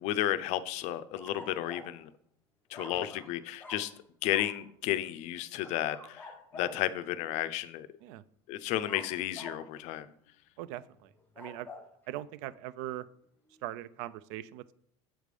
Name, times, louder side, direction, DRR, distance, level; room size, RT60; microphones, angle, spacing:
voice 1, 0.0-2.1 2.7-3.9 4.2-7.9 8.5-10.1, left 13 dB, 50° left, 13 dB, 0.4 m, -33 dB
sound 1, 1.2-2.0 2.7-3.3 3.6-3.9 4.3-4.6 5.6-6.8 8.8-9.7 11.2-11.9, left 2 dB, 10° left, 0.9 m, -47 dB
voice 2, 10.6-11.7 12.1-13.1 13.6-14.7, right 14 dB, 65° right, 17 dB, 0.4 m, -41 dB
7.4 x 3.3 x 5.2 m, 0.66 s
supercardioid pair, 150°, 15 cm